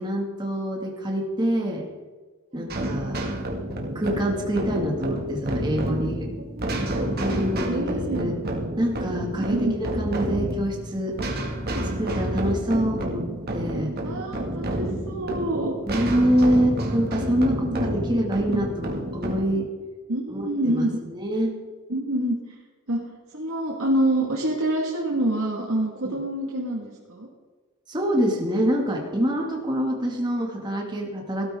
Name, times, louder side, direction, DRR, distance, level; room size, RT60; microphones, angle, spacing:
voice 1, 0.0-1.9 2.5-3.2 3.9-6.3 7.2-8.3 8.8-11.2 12.0-13.3 13.5-13.9 15.8-19.7 20.3-21.6 26.0-26.2 27.9-31.5, equal, 20° right, 0 dB, 2.1 m, -26 dB
sound 1, 2.7-19.4, right 1 dB, 45° right, 2.1 m, -29 dB
voice 2, 6.5-7.1 7.3-8.3 9.4-9.8 11.8-11.9 14.0-16.0 17.7-17.8 18.5-18.6 20.1-21.0 21.9-22.6 22.9-23.0 23.3-27.3, right 1 dB, 70° right, -2 dB, 1.9 m, -27 dB
17.0 x 13.0 x 3.7 m, 1.4 s
head